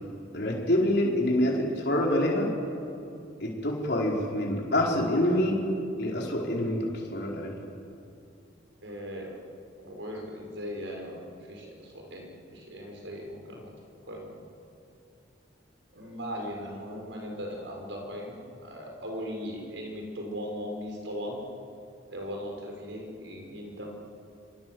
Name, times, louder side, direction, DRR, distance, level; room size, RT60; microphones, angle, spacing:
voice 1, 0.3-2.5 3.4-5.6 6.0-7.6, left 1 dB, 55° left, -1 dB, 4.8 m, -26 dB
voice 2, 8.8-9.5 9.8-13.7 14.1-14.3 15.9-21.4 22.1-23.9, equal, 65° right, 1 dB, 5.8 m, -38 dB
26.5 x 26.0 x 7.9 m, 2.6 s
head